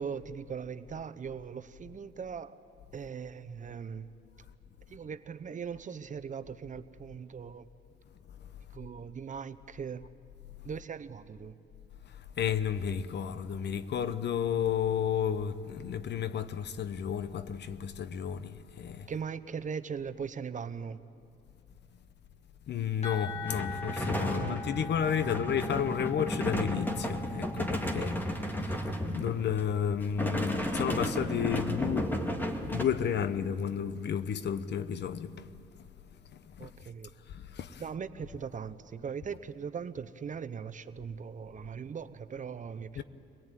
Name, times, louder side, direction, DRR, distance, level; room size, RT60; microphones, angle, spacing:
voice 1, 0.0-2.6 2.9-4.1 4.9-7.7 8.7-10.0 10.6-11.6 19.1-21.0 24.2-24.6 25.2-25.5 36.6-37.1 37.8-43.0, right 6 dB, 40° right, 0.8 m, -39 dB
voice 2, 12.4-19.1 22.7-32.2 32.6-35.5 36.6-36.7 37.3-37.9 43.0-43.1, left 8 dB, 60° left, 1.0 m, -32 dB
sound 1, 23.0-28.6, left 4 dB, 35° left, 2.6 m, -43 dB
sound 2, 23.5-29.6 30.0-32.8, equal, 10° left, 2.2 m, -33 dB
24.5 x 18.5 x 9.1 m
cardioid pair, 90°, 20 cm